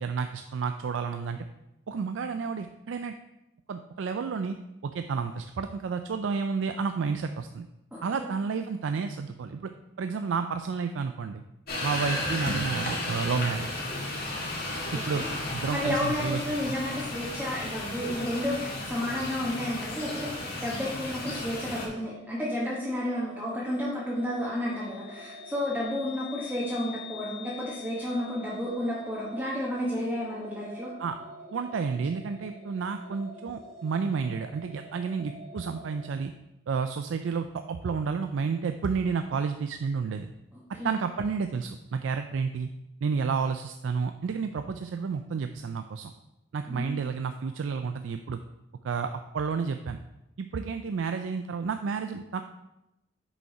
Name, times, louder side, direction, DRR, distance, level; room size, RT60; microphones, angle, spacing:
voice 1, 0.0-1.4 1.9-3.1 3.7-4.6 4.8-7.7 8.0-9.7 10.0-11.4 11.8-13.7 14.9-15.2 15.5-16.7 31.0-31.2 31.5-36.3 36.7-40.3 40.8-42.7 43.0-46.1 46.5-48.4 48.8-50.0 50.4-52.4, right 5 dB, 85° right, 8 dB, 0.4 m, -31 dB
voice 2, 7.9-8.3 14.9-15.3 15.7-30.9 40.5-40.9 46.7-46.9, left 1 dB, 10° right, -7 dB, 1.3 m, -32 dB
sound 1, 11.7-21.9, left 1 dB, 55° left, 1.9 m, -34 dB
sound 2, 21.0-36.1, left 2 dB, 65° right, 2.3 m, -46 dB
6.5 x 5.2 x 4.8 m, 0.91 s
head